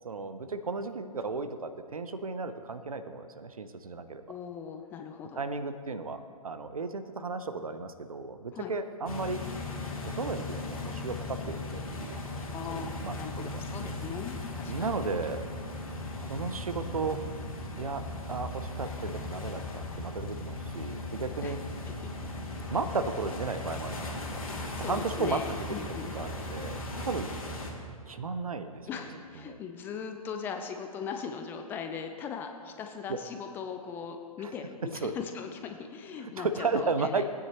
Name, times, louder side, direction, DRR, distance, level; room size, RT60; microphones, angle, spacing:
voice 1, 0.0-4.2 5.3-9.4 10.0-12.2 12.7-13.6 14.7-15.5 16.3-17.2 17.8-18.0 18.3-21.6 22.7-24.4 24.8-27.4 28.1-28.8 29.4-29.6 33.1-33.2 34.4-34.5 35.0-35.1 36.2-37.3, right 4 dB, 70° right, 10 dB, 0.7 m, -34 dB
voice 2, 4.3-5.4 8.5-8.7 12.5-14.9 21.4-21.6 24.8-26.1 28.9-37.3, left 6 dB, 10° left, 5 dB, 0.4 m, -39 dB
sound 1, 9.1-27.7, left 2 dB, 65° left, 2.3 m, -38 dB
18.0 x 9.4 x 3.0 m, 2.2 s
figure-of-eight pair, 120°, 19 cm